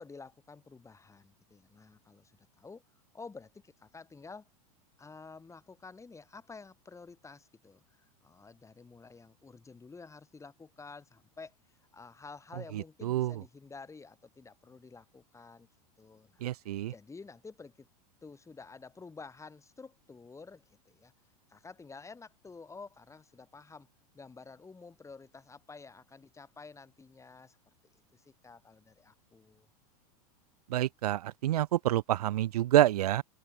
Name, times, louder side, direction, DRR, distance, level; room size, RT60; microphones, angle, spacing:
voice 1, 0.0-2.8 3.1-4.5 5.0-11.6 11.9-15.7 16.0-16.5 16.9-17.9 18.2-21.1 21.5-23.9 24.1-27.6 28.1-29.7, left 4 dB, 15° left, 6.3 m, -50 dB
voice 2, 12.7-13.4 16.4-16.9 30.7-33.2, right 13 dB, 80° right, 0.6 m, -28 dB
hypercardioid pair, 100°, 20 cm